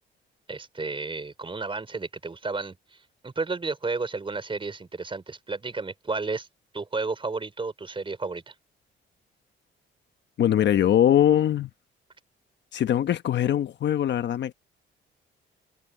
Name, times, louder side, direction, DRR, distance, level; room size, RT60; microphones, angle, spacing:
voice 1, 0.5-6.5 6.7-8.5, right 3 dB, 25° right, 4.4 m, -32 dB
voice 2, 10.4-11.7 12.7-14.5, left 11 dB, 65° left, 1.1 m, -22 dB
cardioid pair, 90°, 20 cm